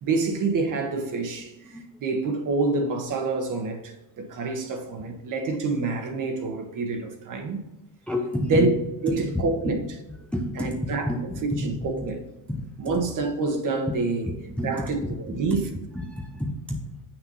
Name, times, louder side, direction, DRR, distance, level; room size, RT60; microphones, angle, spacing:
voice 1, 0.0-7.6 8.4-8.7 9.0-9.8 10.5-11.1 11.4-12.2 12.8-14.3 14.6-15.7, right 3 dB, 50° right, 1.4 m, -27 dB
voice 2, 8.1-8.7 9.3-9.5 10.3-11.7 12.0-12.1 12.5-12.9 14.6-14.7 15.5-15.6 16.1-16.8, left 1 dB, 5° left, 0.7 m, -29 dB
7.3 x 6.0 x 4.1 m
cardioid pair, 130°, 41 cm